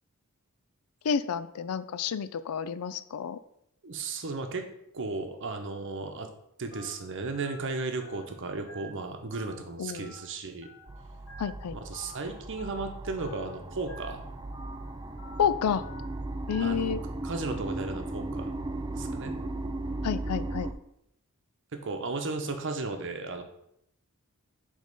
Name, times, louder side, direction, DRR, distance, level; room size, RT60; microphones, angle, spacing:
voice 1, 1.0-3.4 9.8-10.1 11.4-11.8 15.4-15.9 16.5-17.0 20.0-20.7, left 7 dB, 85° left, 14 dB, 0.4 m, -29 dB
voice 2, 3.8-4.7 4.9-6.3 6.6-10.7 11.7-14.2 16.6-17.0 17.2-18.6 18.9-19.4 21.7-23.4, right 3 dB, 60° right, 5 dB, 0.8 m, -35 dB
Telephone, 6.7-6.9 7.4-7.6 8.0-8.2 8.7-8.9 9.3-9.5 10.0-10.2 10.6-10.8 11.3-11.5 11.9-12.1 12.6-12.8 13.2-13.5 13.9-14.1 14.5-14.8 15.2-15.4 15.8-16.1 16.5-16.7, equal, 55° left, 1.4 m, -48 dB
sound 1, 10.9-20.7, right 2 dB, 20° right, 0.3 m, -37 dB
5.3 x 3.6 x 5.3 m, 0.77 s
head